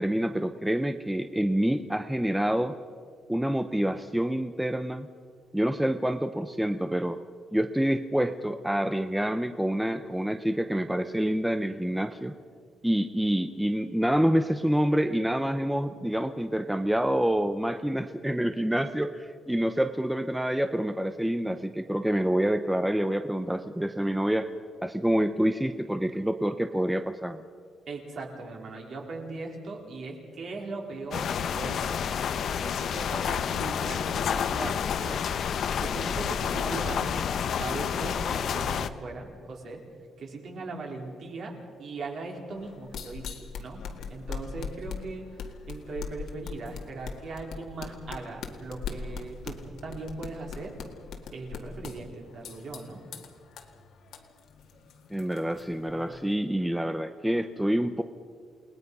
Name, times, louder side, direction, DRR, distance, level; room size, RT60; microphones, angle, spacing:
voice 1, 0.0-2.8 3.3-5.1 5.5-7.2 7.5-12.3 12.8-24.5 24.8-27.4 55.1-58.0, right 1 dB, 5° right, 8 dB, 0.6 m, -27 dB
voice 2, 27.9-35.3 35.7-37.2 37.4-39.8 40.2-43.8 44.1-45.3 45.7-50.7 51.3-53.0, right 3 dB, 50° right, 1 dB, 4.1 m, -39 dB
sound 1, 31.1-38.9, left 8 dB, 55° left, 0.9 m, -29 dB
sound 2, 42.5-56.3, left 5 dB, 70° left, 1.9 m, -41 dB
29.0 x 19.5 x 5.5 m, 2.1 s
cardioid pair, 165°, 0 cm